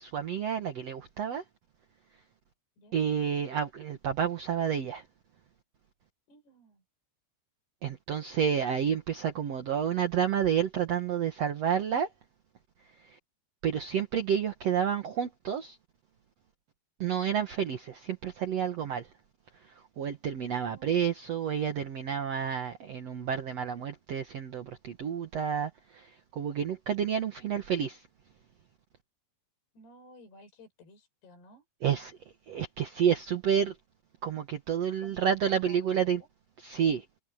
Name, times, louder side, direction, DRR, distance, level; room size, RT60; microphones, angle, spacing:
voice 1, 0.0-1.4 2.9-5.0 7.8-12.1 13.1-13.2 13.6-15.8 17.0-19.1 20.0-28.0 31.8-32.2 32.5-33.8 34.2-36.2 36.6-37.1, right 8 dB, 65° right, 1.6 m, -30 dB
voice 2, 2.8-3.1 6.3-6.8 17.1-17.5 20.6-20.9 29.7-31.7 34.8-36.3, left 2 dB, 65° left, 8.6 m, -55 dB
omnidirectional pair, 5.0 m